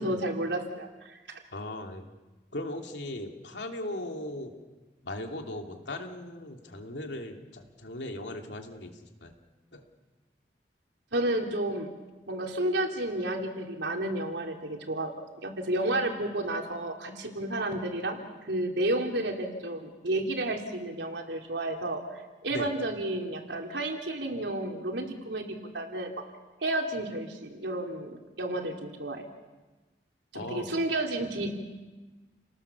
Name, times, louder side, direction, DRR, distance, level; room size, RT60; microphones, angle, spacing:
voice 1, 0.0-1.4 11.1-11.9 12.3-15.1 15.4-18.2 18.5-26.1 26.6-29.2 30.3-31.5, right 1 dB, 85° right, 2 dB, 3.4 m, -31 dB
voice 2, 1.5-2.1 2.5-4.5 5.0-9.3 9.7-9.9 22.5-22.7 30.3-30.7, left 1 dB, 85° left, 3 dB, 2.8 m, -38 dB
30.0 x 19.0 x 7.0 m, 1.2 s
head